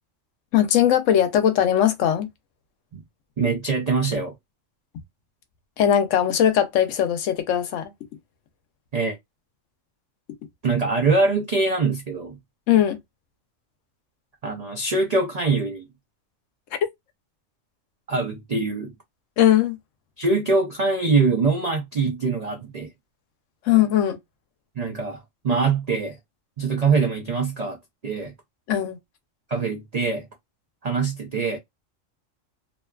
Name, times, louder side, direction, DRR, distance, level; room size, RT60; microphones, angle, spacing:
voice 1, 0.5-2.3 5.8-7.9 12.7-13.0 19.4-19.8 23.7-24.2 28.7-29.0, left 10 dB, 75° left, 0.9 m, -19 dB
voice 2, 3.4-4.3 8.9-9.2 10.6-12.4 14.4-15.9 18.1-18.9 20.2-22.9 24.8-26.2 26.6-27.8 28.0-28.3 29.5-30.3 30.8-31.6, right 4 dB, 70° right, 0.3 m, -23 dB
2.7 x 2.2 x 2.2 m
omnidirectional pair, 1.3 m